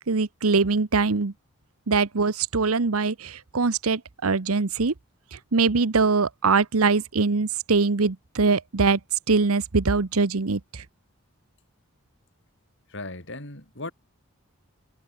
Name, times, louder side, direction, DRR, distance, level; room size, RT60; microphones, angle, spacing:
voice 1, 0.1-1.3 1.9-4.9 5.5-9.0 9.3-10.6, right 4 dB, 80° right, 0.9 m, -22 dB
voice 2, 12.9-13.9, left 2 dB, 55° left, 6.5 m, -37 dB
head